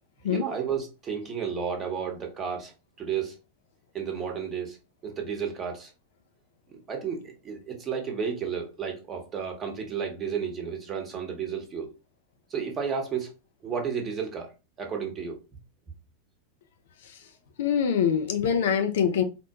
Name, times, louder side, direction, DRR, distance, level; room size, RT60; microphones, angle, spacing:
voice 1, 0.2-2.7 3.0-3.3 3.9-4.8 5.0-5.9 6.7-11.9 12.5-13.3 13.6-14.5 14.8-15.4, right 7 dB, 25° right, 1.0 m, -32 dB
voice 2, 17.6-19.2, left 7 dB, 55° left, 0.5 m, -24 dB
4.2 x 2.1 x 2.9 m
figure-of-eight pair, 90°, 0 cm